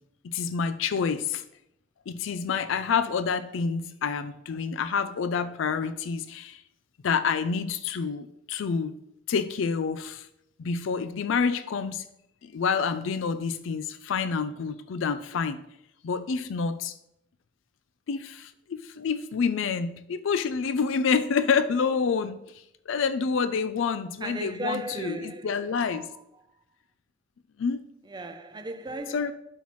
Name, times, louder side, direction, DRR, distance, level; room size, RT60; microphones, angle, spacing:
voice 1, 0.2-1.4 2.1-6.6 7.0-8.9 9.3-10.3 10.6-12.0 12.4-15.6 16.0-17.0 18.1-26.1 27.6-27.8 29.1-29.3, left 5 dB, 70° left, 0.4 m, -28 dB
voice 2, 24.2-26.4 28.0-29.3, right 1 dB, 20° right, 0.6 m, -37 dB
11.5 x 5.6 x 3.1 m
head